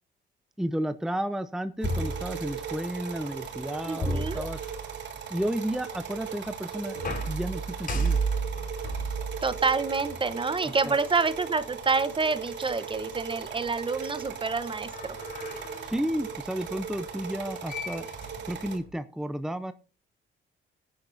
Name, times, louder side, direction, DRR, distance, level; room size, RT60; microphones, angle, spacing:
voice 1, 0.6-4.6 5.3-8.2 10.6-11.0 15.8-18.1 18.5-19.7, equal, ahead, 11 dB, 0.7 m, -32 dB
sound 1, 1.8-2.9 4.0-5.1 6.9-10.5 11.4-11.5 14.7-16.0 17.4-17.5 17.7-18.9, right 2 dB, 45° left, 6.6 m, -33 dB
sound 2, 1.8-18.8, right 7 dB, 65° right, 3.6 m, -38 dB
voice 2, 3.9-4.5 9.4-15.2, right 4 dB, 25° right, 14 dB, 1.0 m, -28 dB
18.0 x 10.5 x 2.6 m, 0.34 s
cardioid pair, 90°, 20 cm